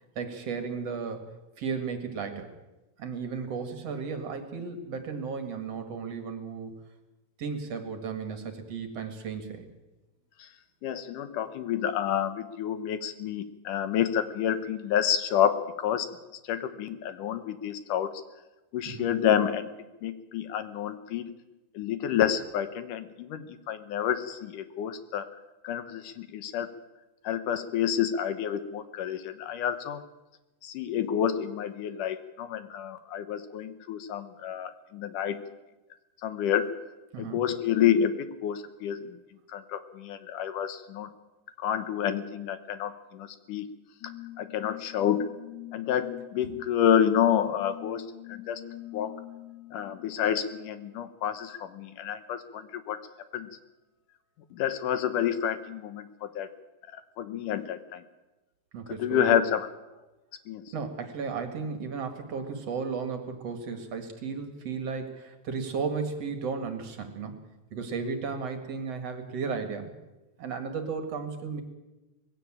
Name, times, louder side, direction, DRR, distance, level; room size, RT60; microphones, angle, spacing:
voice 1, 0.2-2.5 3.0-6.7 7.4-9.7 18.9-19.1 37.1-37.4 46.4-46.5 58.7-59.4 60.7-69.9 70.4-71.6, right 5 dB, 50° right, 7 dB, 2.7 m, -34 dB
voice 2, 10.8-16.1 16.4-18.1 18.7-19.7 20.0-21.4 21.7-25.3 25.6-26.8 27.2-30.0 30.6-35.4 36.2-36.8 37.2-39.2 39.5-41.1 41.6-43.7 44.4-45.3 45.7-48.6 48.9-49.2 49.7-53.0 53.3-53.5 54.5-56.5 56.9-58.0 58.9-59.7 60.5-60.6, left 9 dB, 75° left, 11 dB, 2.6 m, -29 dB
sound 1, 44.0-51.0, left 17 dB, 45° left, 1.7 m, -44 dB
20.0 x 16.0 x 8.8 m, 1.1 s
omnidirectional pair, 3.8 m